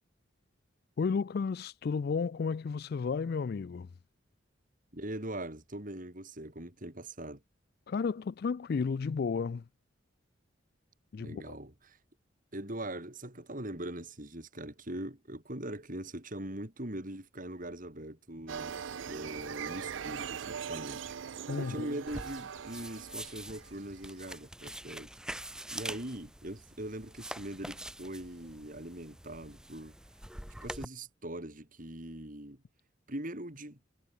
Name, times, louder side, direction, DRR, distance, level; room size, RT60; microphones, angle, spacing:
voice 1, 1.0-3.9 7.9-9.6 11.1-11.5 21.5-21.9, left 5 dB, 55° left, 0.4 m, -32 dB
voice 2, 4.9-7.4 11.2-12.0 12.5-21.1 21.6-25.1 25.7-30.0 30.6-32.6 33.1-33.8, right 1 dB, 45° right, 4.3 m, -41 dB
sound 1, 18.5-24.0, right 7 dB, 75° right, 0.5 m, -41 dB
sound 2, 22.1-30.8, right 1 dB, 5° right, 0.9 m, -45 dB
head